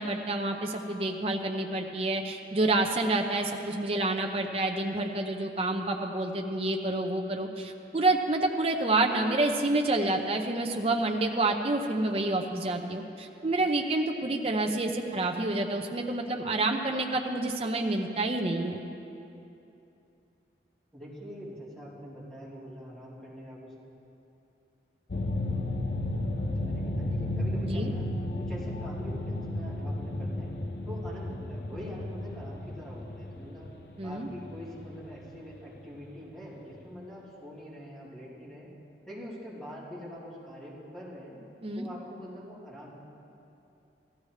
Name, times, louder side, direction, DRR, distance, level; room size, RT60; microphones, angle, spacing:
voice 1, 0.0-18.8 27.7-27.9 34.0-34.3 41.6-41.9, right 2 dB, 35° right, 2 dB, 0.6 m, -28 dB
voice 2, 20.9-23.7 26.6-28.1 28.4-30.5 30.9-33.7 34.0-38.7 39.1-41.4 41.7-42.9, equal, 5° left, -11 dB, 3.6 m, -44 dB
sound 1, 25.1-36.1, left 1 dB, 60° left, 0.7 m, -33 dB
16.5 x 13.5 x 3.2 m, 2.8 s
head